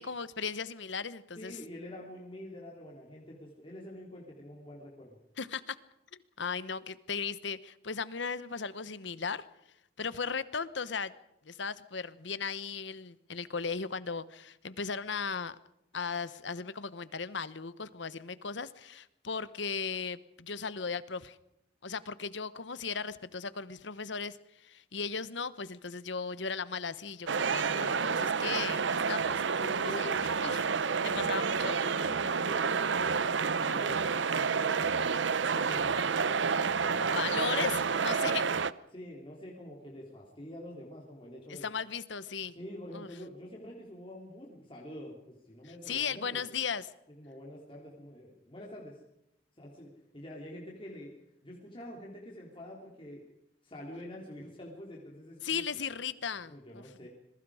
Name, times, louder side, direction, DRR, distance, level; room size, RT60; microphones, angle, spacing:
voice 1, 0.0-1.6 5.4-5.8 6.4-9.4 10.0-11.1 11.5-15.5 15.9-21.4 21.8-24.4 24.6-29.4 29.8-30.7 31.0-31.8 37.1-37.8 38.0-38.4 41.5-42.5 42.9-43.1 45.9-46.9 55.4-57.1, left 5 dB, 75° left, 15 dB, 1.1 m, -36 dB
voice 2, 1.4-5.2 29.6-30.3 31.0-31.4 31.8-35.1 35.5-37.4 37.9-38.6 38.9-41.7 42.5-46.4 47.2-49.0 49.6-51.1 51.4-53.3 53.6-55.6 56.4-57.1, left 1 dB, 25° left, -2 dB, 3.5 m, -46 dB
sound 1, 27.3-38.7, right 5 dB, 75° right, 0.7 m, -29 dB
26.5 x 22.0 x 5.0 m, 0.81 s
head